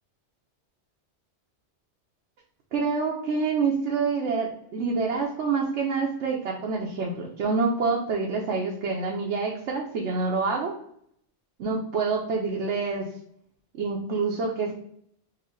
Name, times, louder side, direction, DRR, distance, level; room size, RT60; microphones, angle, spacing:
voice 1, 2.7-10.7 11.6-13.0 13.8-14.7, right 4 dB, 75° right, -2 dB, 1.0 m, -27 dB
4.4 x 2.5 x 3.7 m, 0.68 s
omnidirectional pair, 1.2 m